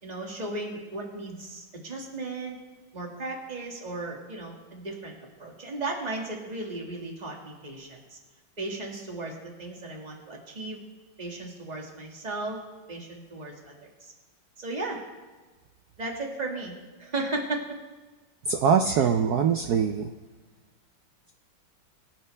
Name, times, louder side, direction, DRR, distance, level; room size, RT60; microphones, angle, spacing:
voice 1, 0.0-2.6 2.9-5.1 5.4-8.2 8.6-10.8 11.2-12.6 12.9-14.1 14.6-15.0 16.0-16.7 17.0-17.6 19.0-19.1, right 2 dB, 20° right, 0 dB, 1.9 m, -35 dB
voice 2, 18.5-20.1, right 6 dB, 85° right, 6 dB, 0.8 m, -23 dB
23.0 x 9.0 x 3.3 m, 1.3 s
omnidirectional pair, 2.4 m